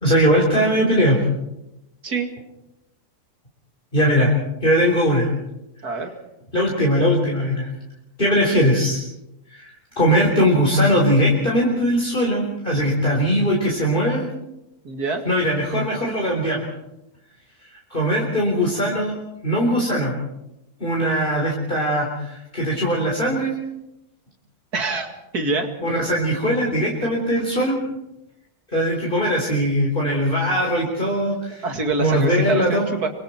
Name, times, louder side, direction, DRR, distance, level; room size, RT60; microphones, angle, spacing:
voice 1, 0.0-1.2 3.9-4.3 4.6-5.3 6.5-7.7 8.2-9.0 9.5-14.2 15.3-16.7 17.9-19.2 19.4-20.1 20.8-23.5 25.8-27.8 28.7-31.7 32.0-32.9, equal, 30° left, -3 dB, 4.2 m, -20 dB
voice 2, 14.8-15.2 24.7-25.7 31.6-33.1, right 3 dB, 70° right, 5 dB, 2.8 m, -25 dB
26.0 x 24.0 x 4.5 m, 0.89 s
omnidirectional pair, 1.7 m